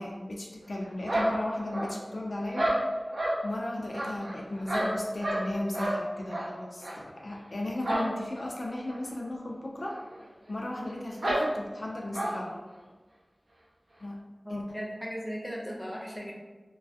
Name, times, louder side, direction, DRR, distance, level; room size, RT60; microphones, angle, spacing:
voice 1, 0.0-2.8 3.4-10.0 10.5-12.6 14.0-14.2 14.5-14.6, left 1 dB, 70° left, -1 dB, 0.3 m, -35 dB
sound 1, 1.1-2.1 2.5-3.4 3.9-5.5 5.7-6.0 6.3-6.5 6.8-7.0 7.8-8.1 8.4-8.5 8.9-9.0 9.8-9.9 10.2-10.3 11.2-11.5 12.1-12.4, right 1 dB, 75° right, 0.4 m, -29 dB
voice 2, 14.4-16.3, equal, 5° left, -3 dB, 0.5 m, -37 dB
2.2 x 2.1 x 2.6 m, 1.3 s
wide cardioid pair, 50°, 0 cm